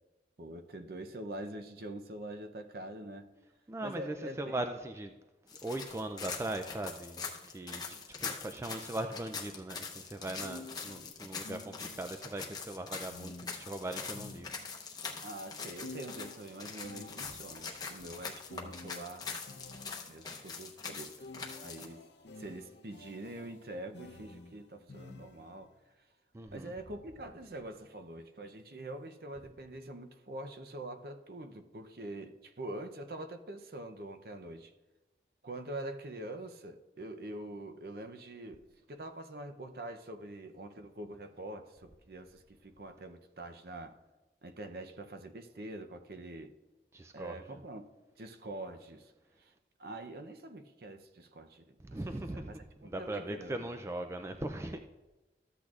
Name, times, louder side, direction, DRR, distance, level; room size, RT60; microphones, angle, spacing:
voice 1, 0.4-3.3 3.8-4.6 15.2-19.3 20.1-21.3 21.6-22.0 22.4-25.7 26.5-34.7 35.4-44.0 44.4-46.5 47.1-47.9 48.2-49.1 49.4-49.5 49.8-52.0 52.3-53.7, right 1 dB, 55° right, 0.6 m, -45 dB
voice 2, 3.7-5.1 5.6-14.5 26.3-26.7 46.9-47.4 51.8-54.8, right 1 dB, 15° right, 0.3 m, -39 dB
sound 1, 5.5-21.9, left 5 dB, 20° left, 0.7 m, -43 dB
sound 2, 10.4-12.2 13.1-15.0 15.8-20.3 21.2-25.7, left 2 dB, 80° left, 0.8 m, -51 dB
13.5 x 8.2 x 2.4 m
head